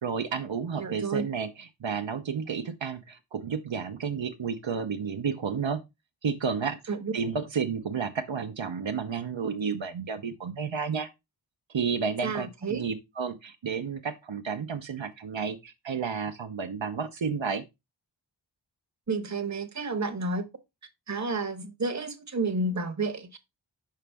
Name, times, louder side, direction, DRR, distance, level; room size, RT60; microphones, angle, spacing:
voice 1, 0.0-5.8 6.2-6.8 7.1-11.1 11.7-17.6, right 6 dB, 80° right, 0.7 m, -31 dB
voice 2, 0.8-1.2 6.9-7.1 12.2-12.9 19.1-20.4 21.1-23.4, right 3 dB, 40° right, 0.9 m, -31 dB
5.7 x 5.0 x 3.4 m
wide cardioid pair, 50°, 45 cm